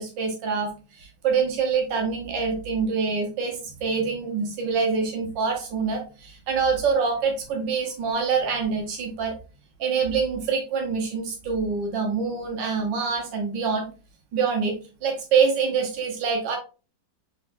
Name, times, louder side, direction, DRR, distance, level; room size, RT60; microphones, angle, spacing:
voice 1, 0.0-9.4 9.8-13.9 14.3-16.6, right 5 dB, 85° right, 2 dB, 1.7 m, -25 dB
4.4 x 3.9 x 2.5 m, 0.34 s
omnidirectional pair, 1.9 m